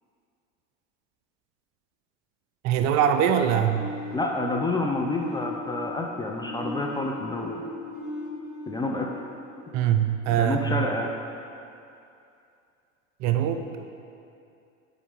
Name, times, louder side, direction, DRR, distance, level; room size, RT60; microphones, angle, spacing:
voice 1, 2.6-3.8 9.7-10.8 13.2-13.9, right 9 dB, 45° right, 7 dB, 0.5 m, -23 dB
sound 1, 3.7-10.4, left 1 dB, 60° left, 1.5 m, -38 dB
voice 2, 4.1-7.6 8.7-9.1 10.3-11.1, left 2 dB, 10° left, 0 dB, 0.4 m, -28 dB
7.0 x 4.8 x 3.6 m, 2.6 s
hypercardioid pair, 85°, 37 cm